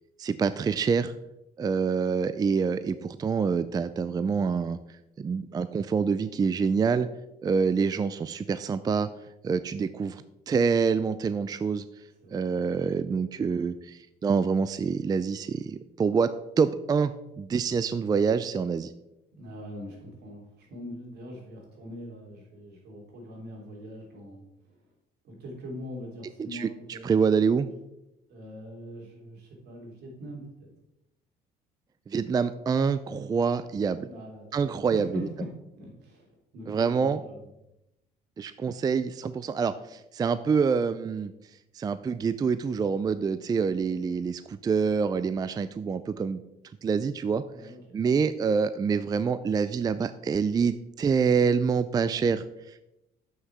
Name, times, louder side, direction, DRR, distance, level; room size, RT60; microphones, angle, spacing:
voice 1, 0.2-1.1 1.6-4.8 5.2-7.1 7.4-9.1 9.4-11.8 12.3-16.3 16.6-18.9 26.5-27.7 32.1-34.1 34.5-35.3 36.7-37.2 38.4-41.3 41.7-46.4 46.8-47.4 47.9-52.8, right 5 dB, 25° right, 13 dB, 0.3 m, -26 dB
voice 2, 12.2-12.6 19.3-24.9 25.2-27.0 28.3-30.7 34.0-35.5 35.8-37.5 47.5-48.0, equal, 75° right, -1 dB, 3.3 m, -42 dB
7.9 x 6.2 x 4.8 m, 0.88 s
cardioid pair, 110°, 17 cm